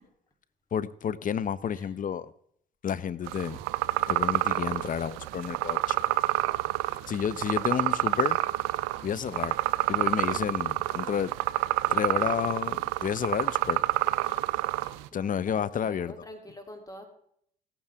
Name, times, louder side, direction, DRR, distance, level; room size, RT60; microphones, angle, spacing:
voice 1, 0.7-2.3 2.8-3.6 4.1-6.0 7.1-8.4 9.0-9.6 9.9-11.3 11.9-13.8 15.1-16.1, left 8 dB, 40° left, 0.7 m, -30 dB
sound 1, 3.3-15.1, right 17 dB, 80° right, 0.5 m, -28 dB
voice 2, 15.1-17.1, left 1 dB, 15° left, 3.1 m, -46 dB
17.5 x 8.9 x 3.5 m
hypercardioid pair, 55°, 21 cm